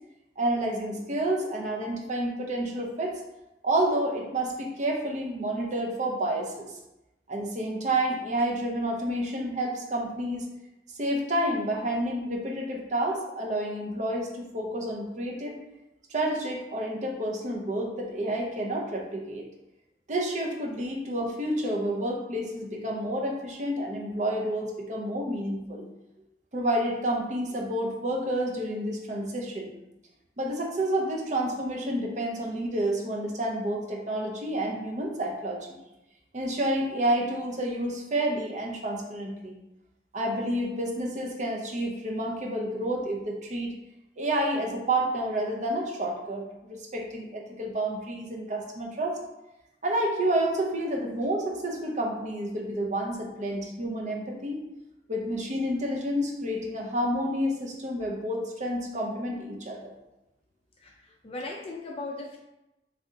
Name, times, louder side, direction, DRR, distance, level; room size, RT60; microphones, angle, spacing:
voice 1, 0.4-3.2 3.6-6.7 7.3-10.5 11.0-15.6 16.1-19.5 20.1-25.8 26.5-29.7 30.4-35.8 36.3-39.5 40.1-43.7 44.2-49.2 49.8-54.6 55.1-59.9, right 1 dB, 45° right, 0 dB, 0.7 m, -29 dB
voice 2, 60.8-62.4, left 2 dB, 35° left, 0 dB, 0.4 m, -38 dB
3.3 x 2.8 x 3.7 m, 0.94 s
head